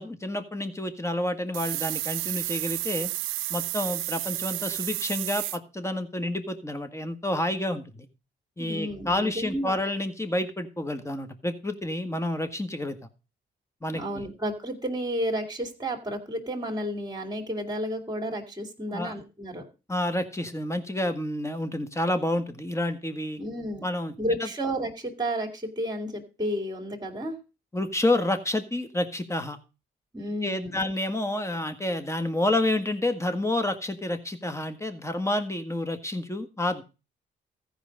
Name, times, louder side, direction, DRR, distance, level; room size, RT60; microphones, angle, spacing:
voice 1, 0.0-3.1 3.5-8.1 8.6-13.0 13.8-14.2 18.9-19.1 19.9-23.4 23.8-24.1 24.4-24.5 27.7-29.6 30.4-36.8, left 1 dB, 15° left, 9 dB, 1.7 m, -29 dB
sound 1, 1.5-5.6, right 17 dB, 85° right, 0.4 m, -31 dB
voice 2, 8.6-9.8 13.9-19.6 23.4-23.9 24.2-27.4 30.1-30.8, equal, 20° right, 2 dB, 2.6 m, -32 dB
14.5 x 5.1 x 5.2 m, 0.32 s
supercardioid pair, 60°, 20 cm